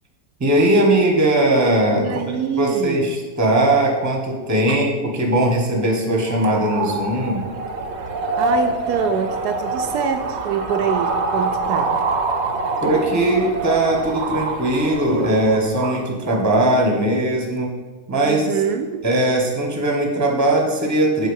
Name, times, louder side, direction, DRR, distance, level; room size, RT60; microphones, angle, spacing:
voice 1, 0.4-2.2 2.6-7.4 12.8-17.7 18.1-18.5 19.0-21.3, right 1 dB, 10° right, 1 dB, 1.1 m, -19 dB
voice 2, 2.0-3.1 4.7-4.8 8.4-11.9 18.2-19.0, right 7 dB, 80° right, 5 dB, 1.1 m, -25 dB
sound 1, 6.3-16.0, right 3 dB, 50° right, 0.9 m, -25 dB
8.1 x 4.4 x 6.3 m, 1.3 s
omnidirectional pair, 1.7 m